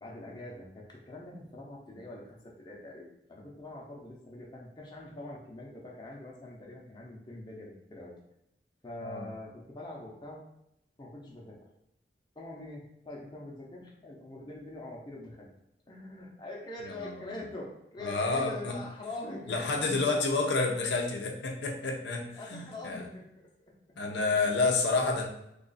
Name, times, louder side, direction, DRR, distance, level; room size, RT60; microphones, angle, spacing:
voice 1, 0.0-8.2 8.8-10.4 11.0-11.7 12.4-15.5 15.9-19.9 22.2-23.8, left 2 dB, 25° left, -2 dB, 0.6 m, -44 dB
voice 2, 18.0-18.8 19.5-23.1 24.0-25.3, left 3 dB, 75° left, 2 dB, 0.5 m, -29 dB
3.1 x 2.4 x 3.9 m, 0.81 s
head